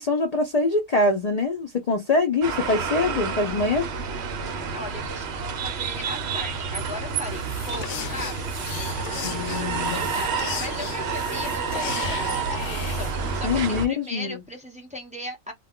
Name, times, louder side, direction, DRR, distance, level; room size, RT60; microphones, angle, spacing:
voice 1, 0.0-3.9 9.2-10.0 13.4-14.4, left 3 dB, 55° left, 0.4 m, -24 dB
sound 1, 2.4-13.9, right 5 dB, 60° right, 0.8 m, -29 dB
voice 2, 4.4-15.5, left 1 dB, 10° right, 0.5 m, -38 dB
sound 2, 7.1-13.4, left 8 dB, 85° left, 1.0 m, -36 dB
2.3 x 2.2 x 3.5 m
omnidirectional pair, 1.4 m